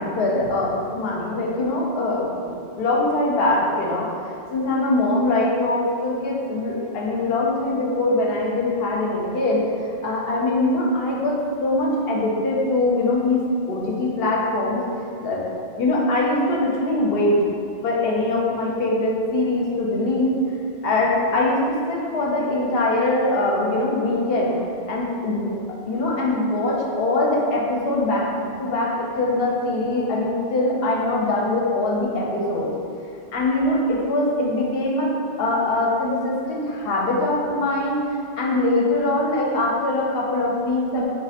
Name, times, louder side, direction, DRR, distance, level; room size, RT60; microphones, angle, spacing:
voice 1, 0.0-4.1 4.5-13.4 13.7-14.8 15.2-15.4 15.8-17.4 17.8-20.3 20.8-24.6 24.9-25.6 25.9-32.7 33.3-35.1 35.4-38.0 38.4-41.1, left 2 dB, 70° left, -3 dB, 0.8 m, -22 dB
3.1 x 2.5 x 2.8 m, 2.4 s
omnidirectional pair, 1.1 m